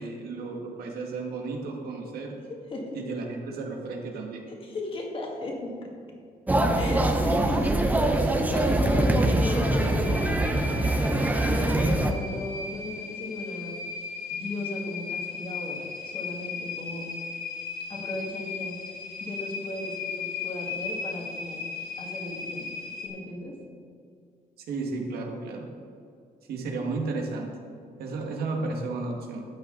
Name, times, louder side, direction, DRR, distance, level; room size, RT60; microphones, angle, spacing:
voice 1, 0.0-2.3 2.9-4.4 24.7-25.7 26.5-27.5 28.0-29.5, right 3 dB, 80° right, 1 dB, 1.9 m, -33 dB
voice 2, 2.5-3.0 4.5-5.9 6.8-7.8 8.1-11.0 11.5-17.1 17.9-18.9 19.2-21.6 22.0-22.7 23.0-23.6, left 2 dB, 35° left, 0 dB, 2.0 m, -36 dB
sound 1, 6.5-12.1, right 1 dB, 10° right, 0.7 m, -23 dB
sound 2, 6.9-23.1, left 5 dB, 80° left, 3.1 m, -37 dB
13.0 x 9.0 x 3.9 m, 2.4 s
cardioid pair, 155°, 16 cm